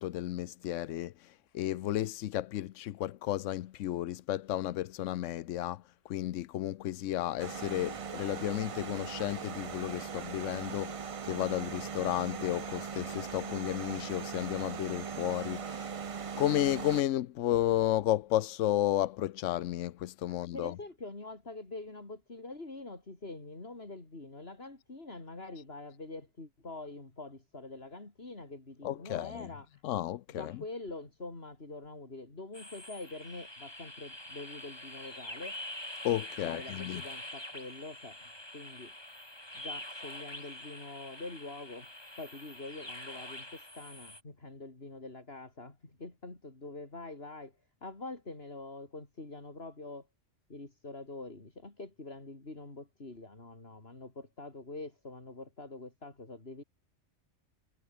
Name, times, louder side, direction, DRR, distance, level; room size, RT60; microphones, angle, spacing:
voice 1, 0.0-15.9 16.4-20.7 28.8-29.5 29.8-30.5 36.0-37.0, left 13 dB, 90° left, 1.0 m, -33 dB
sound 1, 7.4-17.0, right 6 dB, 40° right, 0.5 m, -40 dB
voice 2, 20.3-29.8 30.3-35.6 36.4-38.9 39.5-50.1 50.5-56.6, left 2 dB, 55° left, 4.1 m, -45 dB
sound 2, 32.5-44.2, left 1 dB, 20° left, 3.1 m, -45 dB
omnidirectional pair, 1.3 m